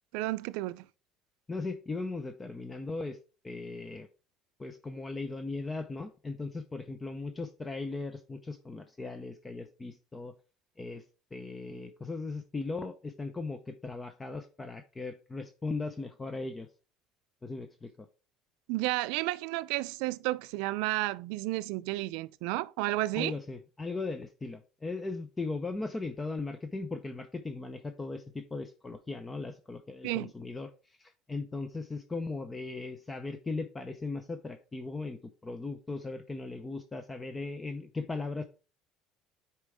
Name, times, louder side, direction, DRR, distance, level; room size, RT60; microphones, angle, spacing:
voice 1, 0.1-0.9 18.7-23.4 30.0-30.3, right 19 dB, 85° right, 0.4 m, -32 dB
voice 2, 1.5-3.2 3.4-4.1 4.6-10.3 10.8-11.0 11.3-16.7 17.4-18.1 23.1-38.4, left 3 dB, 15° left, 0.6 m, -38 dB
9.9 x 4.4 x 3.5 m
cardioid pair, 145°, 0 cm